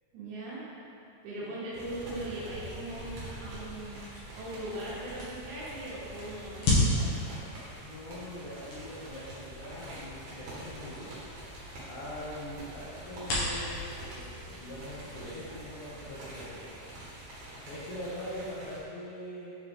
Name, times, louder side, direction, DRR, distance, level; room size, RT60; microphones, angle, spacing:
voice 1, 0.1-0.7 1.2-4.1 4.3-7.3, right 1 dB, 80° right, -11 dB, 3.3 m, -39 dB
sound 1, 1.7-18.8, right 1 dB, 60° right, 2.2 m, -45 dB
sound 2, 1.9-15.8, left 2 dB, 60° left, 2.8 m, -36 dB
voice 2, 7.8-11.2 11.8-16.9 17.6-19.5, left 1 dB, 85° left, -10 dB, 1.8 m, -42 dB
8.9 x 4.0 x 3.5 m, 2.7 s
omnidirectional pair, 5.1 m